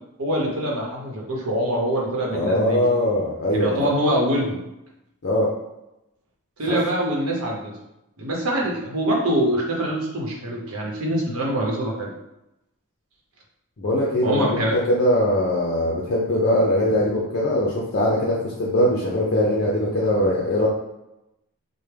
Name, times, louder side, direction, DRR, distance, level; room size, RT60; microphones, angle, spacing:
voice 1, 0.2-2.8 3.5-4.6 6.6-7.7 8.2-12.1 14.2-14.8, right 1 dB, 85° right, -1 dB, 0.9 m, -24 dB
voice 2, 2.3-3.8 5.2-5.5 6.7-6.8 13.8-20.7, left 1 dB, 50° left, -4 dB, 0.6 m, -21 dB
3.3 x 2.2 x 3.3 m, 0.90 s
head